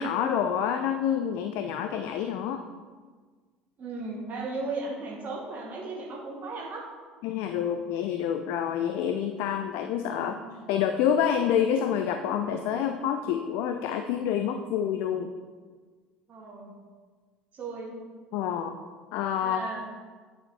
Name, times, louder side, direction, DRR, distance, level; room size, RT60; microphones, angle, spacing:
voice 1, 0.0-2.6 7.2-10.4 10.7-15.3 18.3-18.8 19.1-19.6, left 8 dB, 55° left, 7 dB, 0.5 m, -27 dB
voice 2, 3.8-6.8 10.1-10.5 16.3-16.7 17.5-18.0 19.4-19.8, right 3 dB, 35° right, -2 dB, 1.8 m, -36 dB
8.9 x 7.0 x 4.5 m, 1.5 s
figure-of-eight pair, 60°, 4 cm